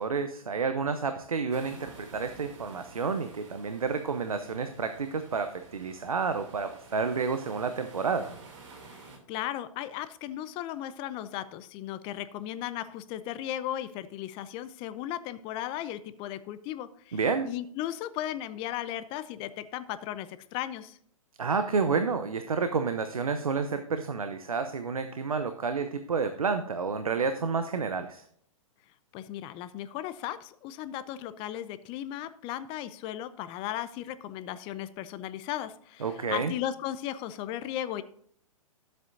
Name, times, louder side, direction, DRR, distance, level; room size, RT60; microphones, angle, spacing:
voice 1, 0.0-8.3 17.1-17.5 21.4-28.2 36.0-36.5, right 5 dB, 90° right, 9 dB, 0.8 m, -30 dB
sound 1, 1.5-9.2, right 3 dB, 60° right, 2.7 m, -51 dB
voice 2, 8.9-17.2 17.4-21.0 29.1-38.0, left 12 dB, 30° left, 14 dB, 0.6 m, -36 dB
12.5 x 7.9 x 2.6 m, 0.64 s
hypercardioid pair, 125°, 18 cm